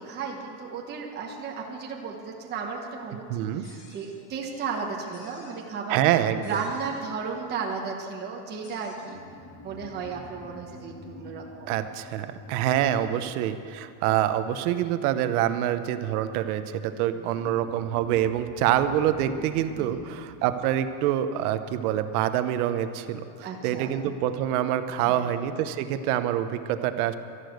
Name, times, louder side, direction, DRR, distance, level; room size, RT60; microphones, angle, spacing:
voice 1, 0.0-3.2 3.5-6.1 6.4-9.2 9.6-11.7 13.1-13.3 17.1-17.4 19.8-20.2 23.4-23.9 25.0-25.3, right 5 dB, 20° right, 0 dB, 1.2 m, -34 dB
voice 2, 3.3-3.7 5.9-6.6 11.7-23.2 23.6-27.1, right 11 dB, 65° right, 10 dB, 1.0 m, -26 dB
sound 1, 3.6-4.2 5.1-5.6 6.4-7.1 8.6-9.0, left 3 dB, 45° left, 3.9 m, -52 dB
sound 2, 8.9-13.9 17.3-22.2, left 2 dB, 25° left, 2.1 m, -48 dB
13.0 x 11.5 x 7.9 m, 2.6 s
supercardioid pair, 165°, 49 cm